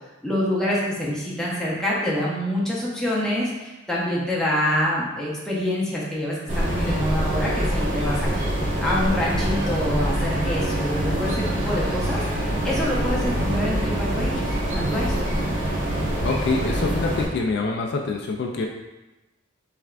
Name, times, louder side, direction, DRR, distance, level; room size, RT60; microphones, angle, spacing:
voice 1, 0.2-8.3 8.6-15.2, left 1 dB, 5° left, -6 dB, 0.6 m, -26 dB
sound 1, 6.5-17.3, right 1 dB, 75° right, 1.2 m, -25 dB
voice 2, 16.2-18.7, left 3 dB, 55° left, 1 dB, 0.3 m, -25 dB
3.4 x 3.3 x 2.4 m, 1.1 s
head